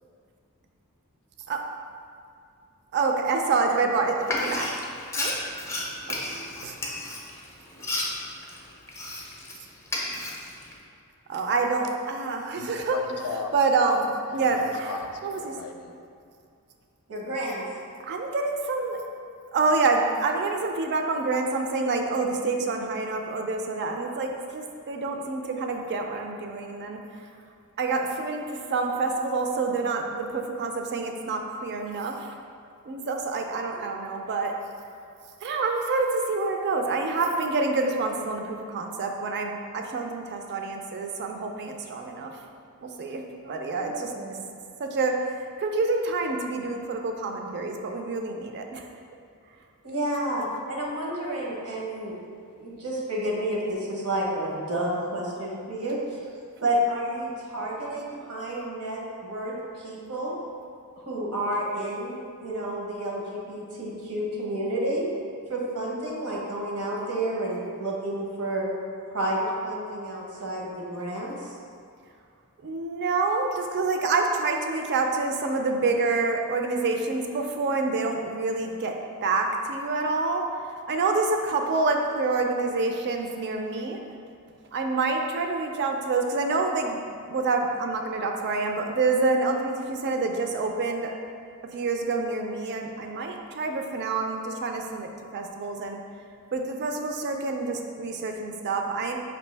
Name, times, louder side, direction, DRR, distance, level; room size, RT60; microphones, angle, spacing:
voice 1, 2.9-4.7 5.2-5.4 6.6-6.7 11.3-13.0 13.5-14.9 15.2-15.5 18.0-19.0 19.5-27.3 27.8-32.3 32.9-34.5 35.4-42.3 42.8-43.2 43.5-44.1 44.8-48.9 56.6-56.7 72.6-78.9 79.2-80.4 80.9-84.0 84.7-91.1 91.7-96.0 96.5-99.2, right 3 dB, 50° right, 3 dB, 0.4 m, -27 dB
Frying (food), 4.2-9.6 9.9-10.7, left 1 dB, 10° left, 0.5 m, -32 dB
voice 2, 12.5-13.5 13.9-14.0 14.5-16.0, left 4 dB, 75° left, 4 dB, 0.4 m, -37 dB
voice 3, 17.1-17.6 43.4-44.3 49.8-52.2 52.6-56.0 56.6-60.3 61.0-65.0 65.5-68.7 69.1-71.3, right 1 dB, 80° right, -3 dB, 1.0 m, -30 dB
5.2 x 2.7 x 3.3 m, 2.3 s
head